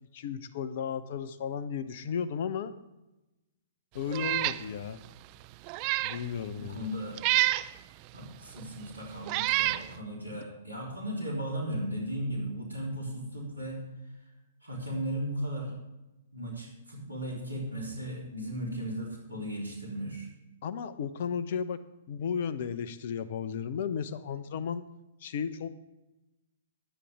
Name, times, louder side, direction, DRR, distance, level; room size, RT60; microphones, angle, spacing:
voice 1, 0.0-2.7 3.9-5.0 6.0-6.9 20.6-21.8 22.1-24.9 25.2-25.7, left 7 dB, 50° left, 15 dB, 0.8 m, -34 dB
Meow, 4.1-4.6 5.0-5.1 5.7-6.2 7.2-7.7 8.6-8.7 9.3-9.8, right 18 dB, 35° right, 0.4 m, -27 dB
voice 2, 6.5-7.2 8.1-13.8 14.6-15.7 16.3-20.3, equal, 85° right, -2 dB, 3.8 m, -36 dB
21.0 x 8.6 x 3.5 m, 0.98 s
figure-of-eight pair, 115°, 0 cm